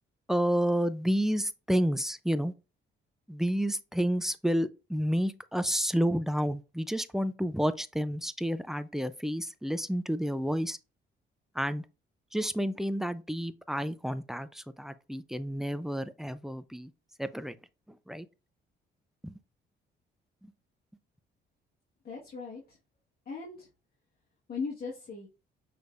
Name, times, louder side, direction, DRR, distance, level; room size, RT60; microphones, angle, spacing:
voice 1, 0.3-2.5 3.3-10.8 11.6-11.8 12.3-16.9 17.2-17.5 18.1-18.3 19.2-19.3, equal, ahead, 0.4 m, -30 dB
voice 2, 22.0-22.8 23.2-23.7 24.5-25.3, left 4 dB, 50° left, 1.5 m, -38 dB
6.2 x 3.3 x 2.5 m
cardioid pair, 90°, 20 cm